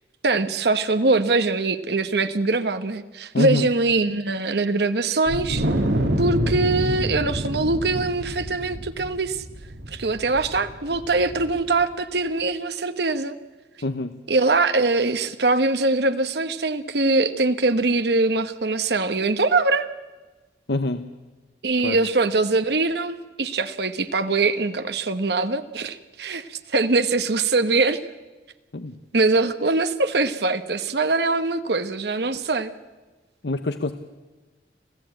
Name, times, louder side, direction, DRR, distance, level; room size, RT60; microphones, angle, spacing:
voice 1, 0.2-5.7 6.2-9.4 9.9-13.4 14.3-19.9 21.6-28.0 29.1-32.7, right 3 dB, 65° right, 10 dB, 1.0 m, -22 dB
voice 2, 3.3-3.7 13.8-14.2 20.7-21.1 21.8-22.0 28.7-28.9 33.4-33.9, left 2 dB, 70° left, 10 dB, 0.9 m, -25 dB
Wind, 5.3-11.8, right 1 dB, 85° right, 2.5 m, -27 dB
26.5 x 15.5 x 8.9 m, 1.2 s
head